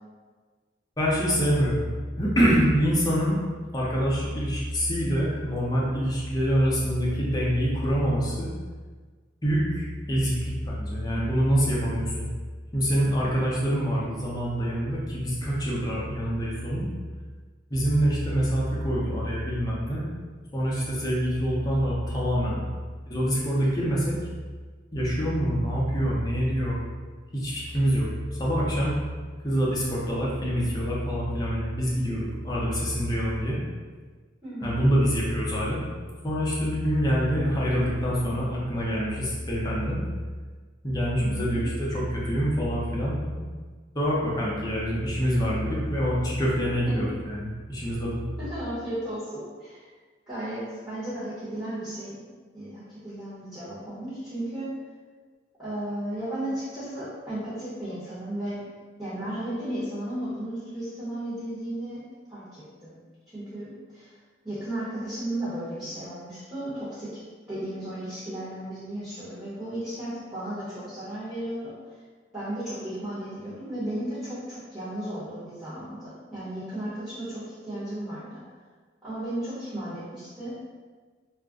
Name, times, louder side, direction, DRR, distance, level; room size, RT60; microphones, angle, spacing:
voice 1, 1.0-1.9 2.2-3.4 3.7-8.5 9.4-12.2 12.7-16.9 17.7-20.1 20.5-22.6 23.1-24.2 24.9-26.8 27.3-28.1 28.4-28.9 29.4-33.6 34.6-35.8 36.2-40.0 40.8-43.5 43.9-48.2, equal, 20° left, -5 dB, 0.6 m, -25 dB
voice 2, 34.4-34.8 41.2-41.6 46.8-47.1 48.4-49.9 50.3-52.2 52.5-54.8 55.6-58.6 59.0-62.0 62.3-63.0 63.3-64.1 64.4-67.2 67.5-71.7 72.3-78.4 79.0-80.6, right 1 dB, 15° right, -13 dB, 0.9 m, -34 dB
2.4 x 2.1 x 3.5 m, 1.5 s
head